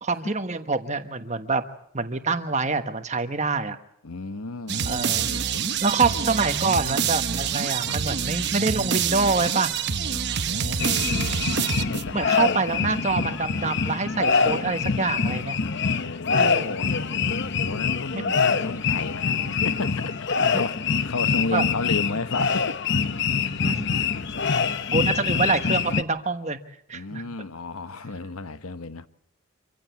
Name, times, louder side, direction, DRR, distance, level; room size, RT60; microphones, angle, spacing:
voice 1, 0.0-1.6 1.9-3.8 4.9-5.3 5.8-9.7 12.1-15.6 16.3-16.7 18.1-18.3 20.5-20.6 21.5-21.6 23.6-24.0 24.9-26.6 26.9-27.2, right 4 dB, 30° right, 1.2 m, -26 dB
voice 2, 4.0-6.0 6.3-6.4 7.8-8.0 10.1-11.4 11.9-13.0 15.6-22.8 23.2-23.5 24.0-24.5 24.8-24.9 26.9-29.1, left 3 dB, 75° left, 1.0 m, -34 dB
sound 1, 4.7-12.3, right 7 dB, 50° right, 0.9 m, -26 dB
sound 2, 10.8-26.0, left 5 dB, 50° left, 0.8 m, -25 dB
25.5 x 15.5 x 8.3 m
head